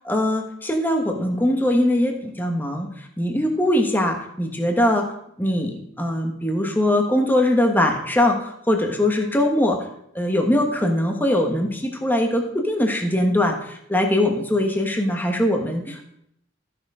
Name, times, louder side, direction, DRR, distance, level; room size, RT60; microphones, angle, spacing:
voice 1, 0.1-5.1 5.4-9.9 10.1-16.0, left 1 dB, 10° left, 3 dB, 1.3 m, -21 dB
13.5 x 6.8 x 4.9 m, 0.73 s
head